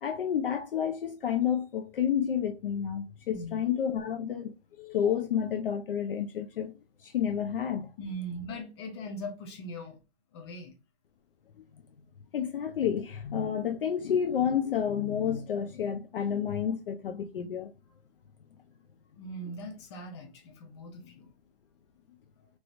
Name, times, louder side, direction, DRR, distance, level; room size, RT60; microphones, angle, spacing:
voice 1, 0.0-6.7 7.0-7.9 12.3-17.7, left 8 dB, 60° left, 0.5 m, -30 dB
voice 2, 3.3-3.6 8.0-10.0 10.3-10.7 19.2-21.3 22.4-22.5, equal, 25° left, 0.7 m, -40 dB
3.0 x 3.0 x 2.5 m
hypercardioid pair, 150°, 32 cm